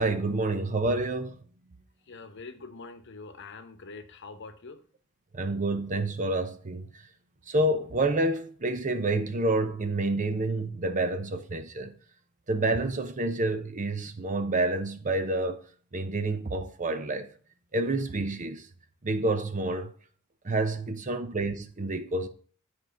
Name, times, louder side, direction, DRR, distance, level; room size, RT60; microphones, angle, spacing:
voice 1, 0.0-1.4 5.3-6.9 7.5-11.9 12.5-15.6 15.9-17.3 17.7-18.7 19.0-19.9 20.4-22.3, right 2 dB, 40° right, 0.9 m, -28 dB
voice 2, 2.1-4.8, left 4 dB, 60° left, 1.0 m, -44 dB
10.0 x 4.8 x 5.3 m
head